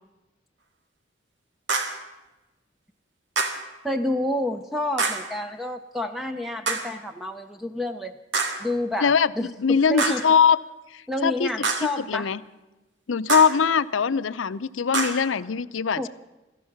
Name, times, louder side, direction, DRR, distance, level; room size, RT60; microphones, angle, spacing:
sound 1, 1.7-2.1 3.4-3.7 5.0-5.3 6.7-7.0 8.3-8.7 10.0-10.4 11.6-12.0 13.3-13.6 14.9-15.3, right 3 dB, 75° right, 1.9 m, -26 dB
voice 1, 3.8-8.1 8.6-10.2 11.1-12.3 16.0-16.1, left 1 dB, ahead, 6 dB, 0.5 m, -29 dB
voice 2, 9.0-10.6 10.9-12.4 13.1-16.1, left 6 dB, 90° left, 16 dB, 0.6 m, -22 dB
17.0 x 13.5 x 5.9 m, 1.1 s
head